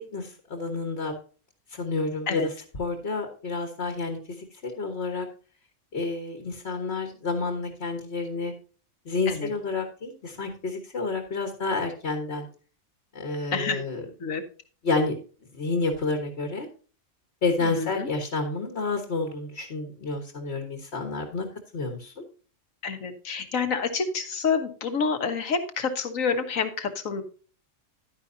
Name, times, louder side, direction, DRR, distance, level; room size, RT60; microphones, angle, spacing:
voice 1, 0.1-1.1 1.7-2.5 2.8-5.3 5.9-8.5 9.0-12.5 13.1-14.0 14.8-15.1 15.5-16.7 17.4-21.5 21.7-22.2, left 3 dB, 55° left, 4 dB, 1.6 m, -29 dB
voice 2, 17.6-18.1 22.8-27.2, left 5 dB, 90° left, 8 dB, 1.7 m, -28 dB
11.0 x 9.8 x 2.7 m, 0.38 s
omnidirectional pair, 1.3 m